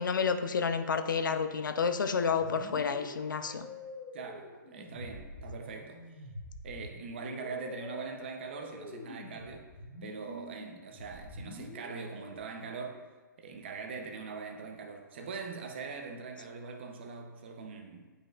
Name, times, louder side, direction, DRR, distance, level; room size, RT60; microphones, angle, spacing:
voice 1, 0.0-3.7, left 5 dB, 70° left, 9 dB, 0.6 m, -30 dB
sound 1, 2.4-12.4, left 1 dB, 20° left, 1.1 m, -47 dB
voice 2, 4.1-6.0 6.6-9.7 10.0-13.0 13.4-18.1, right 4 dB, 35° right, 4 dB, 0.7 m, -42 dB
9.6 x 5.2 x 2.5 m, 1.3 s
hypercardioid pair, 170°, 11 cm